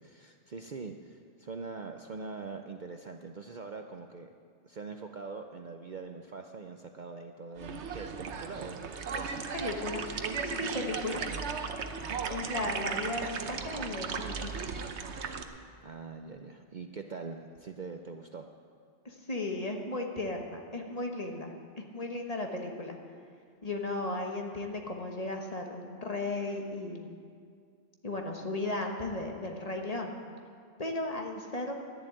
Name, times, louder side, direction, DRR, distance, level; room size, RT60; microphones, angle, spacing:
voice 1, 0.0-4.3 4.6-9.3 11.1-11.4 15.8-18.5, right 4 dB, 45° right, 5 dB, 0.7 m, -43 dB
sound 1, 7.6-15.4, right 5 dB, 65° right, 1.1 m, -36 dB
voice 2, 9.5-11.2 12.3-14.7 19.0-23.0 23.6-27.1 28.0-30.2 30.8-31.8, left 2 dB, 30° left, 2 dB, 1.3 m, -35 dB
11.5 x 11.0 x 9.0 m, 2.2 s
omnidirectional pair, 1.3 m